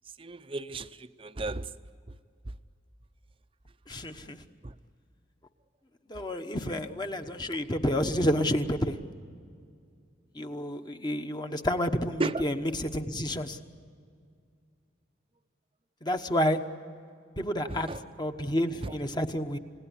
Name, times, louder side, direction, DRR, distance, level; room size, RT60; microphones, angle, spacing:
voice 1, 0.2-1.7 4.6-4.7 12.2-12.4 17.7-18.0 18.8-18.9, right 2 dB, 30° right, 0.7 m, -33 dB
voice 2, 3.9-4.4 6.1-9.0 10.3-13.6 16.0-16.6 17.4-17.9 18.2-19.6, equal, 20° left, 1.1 m, -29 dB
30.0 x 17.5 x 9.9 m
head